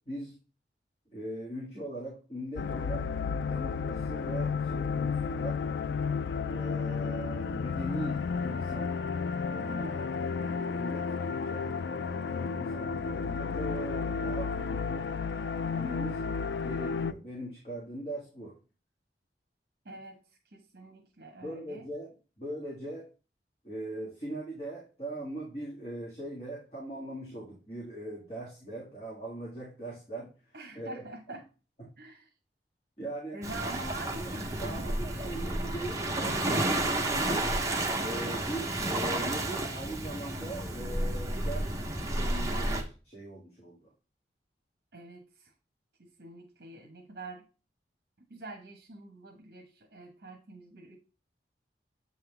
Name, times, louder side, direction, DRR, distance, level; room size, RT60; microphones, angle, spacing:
voice 1, 1.1-3.0 3.4-5.6 6.5-9.0 9.5-15.1 15.7-16.2 16.6-18.5 21.4-22.1 22.4-23.1 23.6-30.3 30.8-31.0 33.0-33.4 34.2-34.3 34.6-37.5 38.0-43.9, right 1 dB, 35° left, -4 dB, 1.8 m, -40 dB
sound 1, 2.6-17.1, left 5 dB, 75° left, 0.3 m, -32 dB
voice 2, 19.8-20.2 20.5-21.9 30.5-31.5 32.0-32.3 33.3-35.0 44.9-45.5 46.0-47.4 48.3-51.0, right 2 dB, 60° right, 3 dB, 1.0 m, -45 dB
Waves surf, 33.4-42.8, right 1 dB, 20° right, 0.8 m, -31 dB
7.6 x 3.8 x 3.3 m, 0.33 s
head